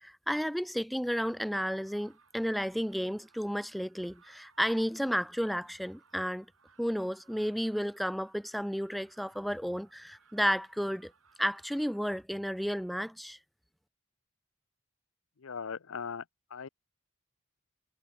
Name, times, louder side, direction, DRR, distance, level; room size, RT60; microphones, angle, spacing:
voice 1, 0.0-6.5 6.8-11.1 11.4-13.4, equal, ahead, 0.4 m, -32 dB
sound 1, 1.4-12.2, right 5 dB, 80° right, 7.2 m, -65 dB
voice 2, 15.4-16.2 16.5-16.7, left 6 dB, 80° left, 0.6 m, -39 dB
head